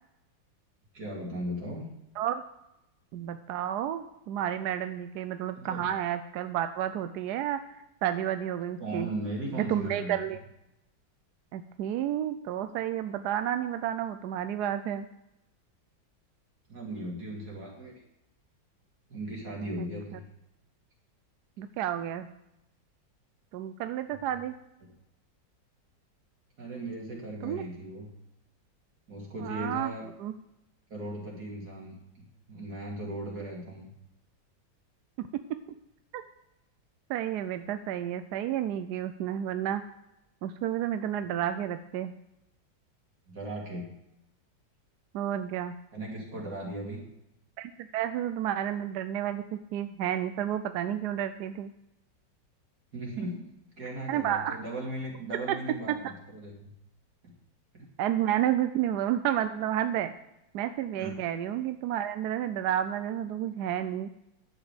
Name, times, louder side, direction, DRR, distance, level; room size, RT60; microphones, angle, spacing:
voice 1, 0.9-1.8 5.5-5.8 8.8-10.3 16.7-18.0 19.1-20.2 26.6-28.1 29.1-30.1 30.9-32.0 32.5-33.9 43.3-43.9 45.9-47.0 52.9-53.4 53.8-56.7 57.2-57.3 57.7-57.9 61.0-61.1, right 1 dB, 55° right, -2 dB, 3.3 m, -37 dB
voice 2, 3.1-9.1 9.7-10.4 11.5-15.1 19.8-19.9 21.6-22.3 23.5-24.5 27.4-27.6 29.4-29.9 30.2-30.3 35.3-35.6 36.1-36.2 37.1-39.8 40.4-42.1 45.1-45.7 47.6-51.7 54.1-54.6 55.5-55.6 55.9-56.0 58.0-60.1 60.5-64.1, right 11 dB, 70° right, 10 dB, 1.0 m, -31 dB
11.0 x 8.1 x 5.0 m, 0.88 s
omnidirectional pair, 2.0 m